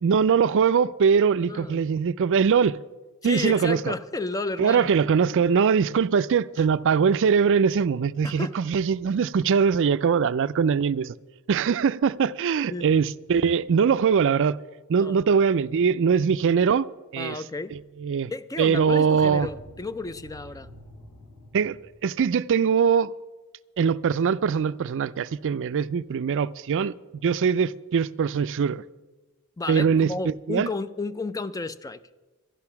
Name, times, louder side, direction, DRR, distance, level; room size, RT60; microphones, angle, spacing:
voice 1, 0.0-2.8 3.2-3.9 4.6-11.1 11.5-14.6 14.9-16.9 17.1-17.4 17.7-18.3 18.6-19.5 21.5-23.1 23.8-26.9 27.2-28.8 29.7-30.7, right 6 dB, 60° right, 0.4 m, -22 dB
voice 2, 1.5-1.8 3.2-4.9 8.2-8.6 12.7-12.9 15.0-15.2 17.2-17.8 18.3-20.7 29.6-32.2, left 3 dB, 15° left, 0.4 m, -32 dB
sound 1, 19.2-22.0, left 1 dB, 85° left, 5.2 m, -46 dB
12.0 x 11.5 x 5.8 m
head